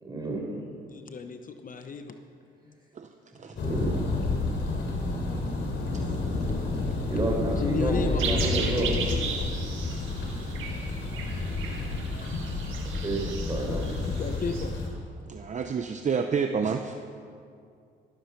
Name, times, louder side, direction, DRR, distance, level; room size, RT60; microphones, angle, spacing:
voice 1, 0.0-0.7 3.4-3.9 7.1-8.9 12.8-13.9, right 2 dB, 20° right, -1 dB, 4.3 m, -30 dB
voice 2, 0.9-2.2 2.7-2.8 7.6-9.5 13.7-13.8 14.0-14.7, left 5 dB, 45° left, 7 dB, 0.9 m, -34 dB
Thunder, 3.6-14.9, left 3 dB, 60° left, 3.2 m, -30 dB
sound 1, 8.2-14.7, right 6 dB, 80° right, 1.9 m, -36 dB
voice 3, 15.3-16.9, right 6 dB, 35° right, 6 dB, 0.7 m, -29 dB
13.0 x 13.0 x 5.9 m, 2.3 s
cardioid pair, 90°, 20 cm